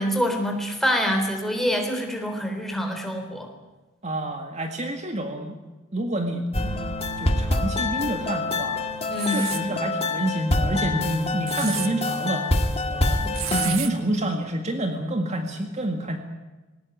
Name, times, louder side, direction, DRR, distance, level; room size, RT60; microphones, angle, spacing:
voice 1, 0.0-3.5 9.1-9.5, equal, ahead, 3 dB, 3.6 m, -25 dB
voice 2, 4.0-5.6 5.9-8.8 9.3-12.5 12.9-16.2, right 1 dB, 30° right, 4 dB, 1.9 m, -28 dB
sound 1, 6.5-13.8, left 2 dB, 30° left, 1.8 m, -26 dB
sound 2, 9.1-9.6 11.3-11.9 13.3-13.9, right 12 dB, 70° right, 1.5 m, -31 dB
20.5 x 18.5 x 9.3 m, 1.2 s
head